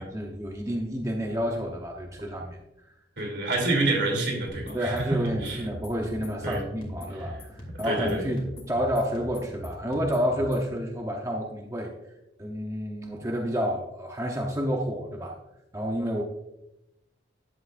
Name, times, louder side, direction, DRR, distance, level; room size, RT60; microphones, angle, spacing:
voice 1, 0.0-2.6 4.7-11.9 12.4-15.3 15.7-16.2, equal, 15° right, 1 dB, 0.8 m, -29 dB
voice 2, 3.2-5.0 5.4-5.6 6.4-6.6 7.8-8.3, right 2 dB, 70° right, 0 dB, 2.8 m, -27 dB
sound 1, 4.5-10.7, equal, 30° left, 2.6 m, -41 dB
11.5 x 8.0 x 2.5 m, 0.89 s
head